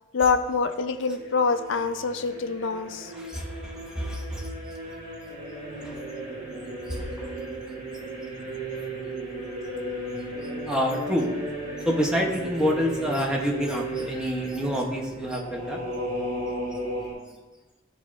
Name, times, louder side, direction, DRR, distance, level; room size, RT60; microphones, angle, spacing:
voice 1, 0.1-3.1, left 4 dB, 65° left, 9 dB, 0.4 m, -25 dB
sound 1, 0.7-17.1, right 1 dB, 40° right, 1.7 m, -35 dB
voice 2, 3.2-4.5 5.8-5.9 6.9-7.3 10.7-11.3 11.8-15.8, equal, 5° right, -1 dB, 0.7 m, -27 dB
10.5 x 4.1 x 2.4 m, 1.2 s
head